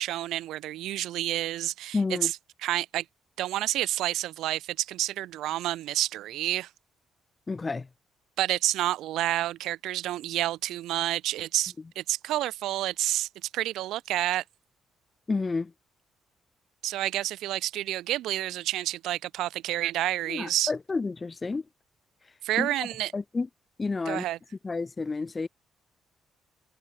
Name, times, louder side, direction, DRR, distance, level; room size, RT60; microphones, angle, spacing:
voice 1, 0.0-2.4 2.6-3.0 3.4-6.7 8.4-14.4 16.8-20.7 22.4-23.1 24.1-24.4, right 14 dB, 85° right, 2.3 m, -29 dB
voice 2, 1.9-2.3 7.5-7.9 15.3-15.7 20.3-21.6 22.6-22.7 23.1-23.5 23.8-24.2 24.6-25.5, left 3 dB, 25° left, 1.4 m, -30 dB
cardioid pair, 90°, 0 cm